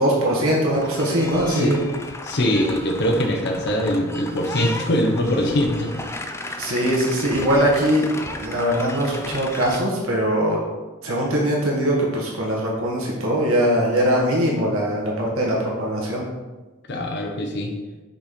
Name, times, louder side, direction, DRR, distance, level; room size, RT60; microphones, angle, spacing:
voice 1, 0.0-1.8 6.6-8.1 8.4-10.6 11.0-16.2, equal, 75° right, -3 dB, 1.5 m, -21 dB
sound 1, 0.7-9.8, left 2 dB, 10° left, 0.4 m, -35 dB
voice 2, 2.2-5.9 16.9-17.7, equal, 55° left, 1 dB, 0.8 m, -22 dB
5.4 x 4.2 x 5.0 m, 1.2 s
head